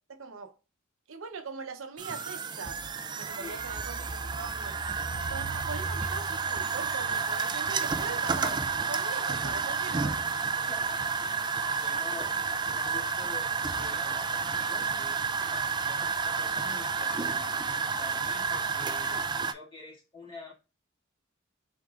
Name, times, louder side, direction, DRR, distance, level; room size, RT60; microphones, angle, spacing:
voice 1, 0.1-0.5 1.1-2.8 3.2-4.8 5.3-8.6 8.9-10.2, right 5 dB, 90° right, 0.7 m, -41 dB
sound 1, 2.0-19.5, right 5 dB, 20° right, 0.3 m, -31 dB
voice 2, 3.4-3.7 10.7-17.7 18.0-20.5, left 3 dB, 25° left, 2.1 m, -48 dB
4.8 x 3.7 x 2.3 m
head